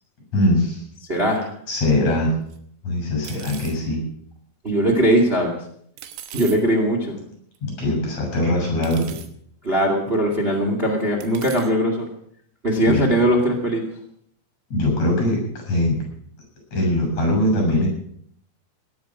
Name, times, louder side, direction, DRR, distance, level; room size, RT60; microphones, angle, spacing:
voice 1, 0.3-0.8 1.7-2.3 2.8-4.0 7.6-9.2 12.9-13.0 14.7-16.0 16.7-17.9, left 1 dB, 35° left, 1 dB, 8.6 m, -21 dB
voice 2, 1.1-1.5 4.6-5.6 6.3-7.2 9.6-12.0 12.6-13.8, right 1 dB, 65° right, 1 dB, 0.6 m, -20 dB
sound 1, 2.5-2.6 3.2-3.8 6.0-6.6 7.6-7.7 8.8-9.3 10.1-10.2 11.2-11.7, right 10 dB, 80° right, 3.8 m, -39 dB
17.5 x 11.0 x 6.2 m, 0.68 s
omnidirectional pair, 5.8 m